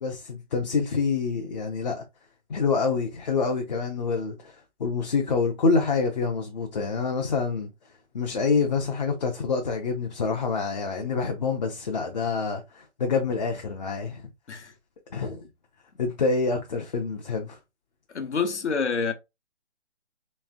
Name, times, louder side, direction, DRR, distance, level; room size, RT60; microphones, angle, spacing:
voice 1, 0.0-2.0 2.5-4.5 4.8-7.7 8.1-14.2 15.1-15.4 16.0-17.6, left 4 dB, 35° left, 0.6 m, -26 dB
voice 2, 18.1-19.1, left 5 dB, 70° left, 1.0 m, -27 dB
3.3 x 3.2 x 3.4 m
figure-of-eight pair, 140°, 36 cm